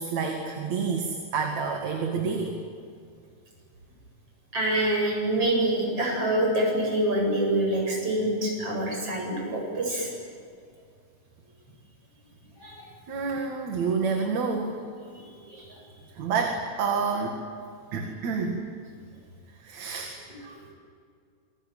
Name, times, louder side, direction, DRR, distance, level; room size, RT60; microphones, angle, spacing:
voice 1, 0.0-2.6 13.1-14.8 16.2-17.4 17.9-18.6 19.6-20.1, right 5 dB, 70° right, 2 dB, 3.4 m, -28 dB
voice 2, 4.5-10.1 12.6-12.9 15.1-15.8, right 1 dB, 50° right, -1 dB, 9.1 m, -26 dB
27.5 x 22.5 x 9.3 m, 2.2 s
omnidirectional pair, 3.3 m